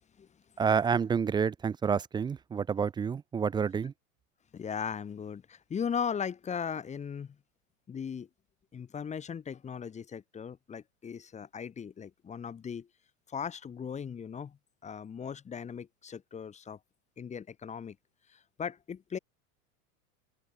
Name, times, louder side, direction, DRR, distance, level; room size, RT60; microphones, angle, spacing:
voice 1, 0.6-3.9, right 6 dB, 10° right, 0.4 m, -29 dB
voice 2, 4.5-7.3 7.9-8.3 8.7-12.9 13.3-14.6 14.8-16.8 17.2-18.0 18.6-19.2, left 7 dB, 15° left, 0.8 m, -38 dB
hypercardioid pair, 105°, 42 cm